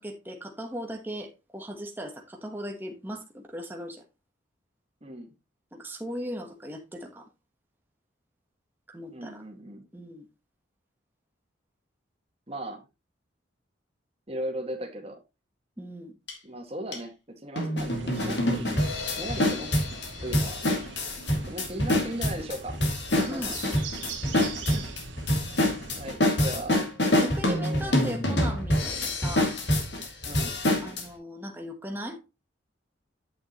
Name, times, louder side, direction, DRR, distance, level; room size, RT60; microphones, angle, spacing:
voice 1, 0.0-4.0 5.7-7.3 8.9-9.4 9.9-10.3 15.8-16.1 23.3-23.5 27.1-29.6 30.8-32.2, equal, 10° right, 1.1 m, -38 dB
voice 2, 5.0-5.3 9.1-9.8 12.5-12.8 14.3-15.2 16.4-18.7 19.2-19.7 20.2-20.7 21.5-22.8 23.2-23.6 24.7-24.9 26.0-26.9 27.5-28.1 30.3-30.6, right 1 dB, 30° right, 1.8 m, -37 dB
sound 1, 16.3-16.4 16.9-17.0 17.6-31.0, left 1 dB, 60° left, 2.5 m, -26 dB
sound 2, 17.8-26.2, right 4 dB, 70° right, 1.9 m, -43 dB
8.8 x 6.8 x 3.0 m
head